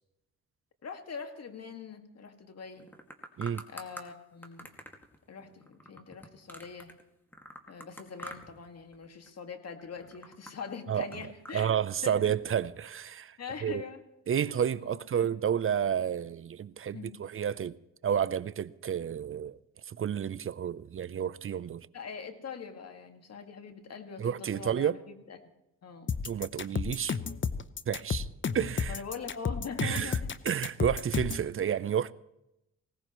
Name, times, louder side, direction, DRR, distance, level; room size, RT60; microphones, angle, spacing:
voice 1, 0.8-2.9 3.7-4.7 5.3-6.9 7.7-11.7 12.0-12.3 13.4-14.0 14.3-14.4 14.8-15.3 16.9-17.3 21.9-25.4 25.8-26.1 28.9-30.4, left 6 dB, 55° left, 2.0 m, -43 dB
sound 1, 2.8-4.1 4.4-7.0 7.3-8.7 8.9-9.4 9.8-11.6, equal, 5° left, 2.1 m, -46 dB
voice 2, 11.5-13.8 14.3-17.8 18.0-19.6 19.9-21.9 24.2-25.0 26.2-27.2 27.9-28.3 28.5-29.0 29.8-30.2 30.4-32.1, right 8 dB, 45° right, 0.6 m, -30 dB
sound 2, 26.1-31.5, left 6 dB, 40° left, 0.8 m, -32 dB
19.5 x 17.5 x 3.1 m
supercardioid pair, 55°, 30 cm